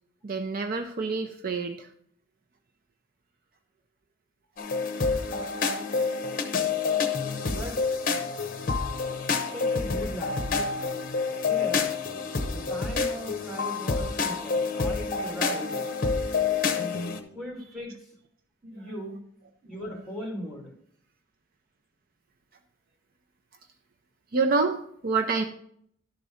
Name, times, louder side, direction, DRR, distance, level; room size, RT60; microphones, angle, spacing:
voice 1, 0.2-1.9 18.8-18.9 24.3-25.4, right 4 dB, 50° right, 5 dB, 0.6 m, -27 dB
sound 1, 4.6-17.2, left 4 dB, 45° left, 0.8 m, -28 dB
voice 2, 7.5-8.5 9.5-10.7 11.4-11.9 12.5-15.8 17.3-17.9 18.6-19.2 19.6-20.7, equal, ahead, 0 dB, 2.0 m, -38 dB
11.5 x 4.0 x 4.9 m, 0.66 s
head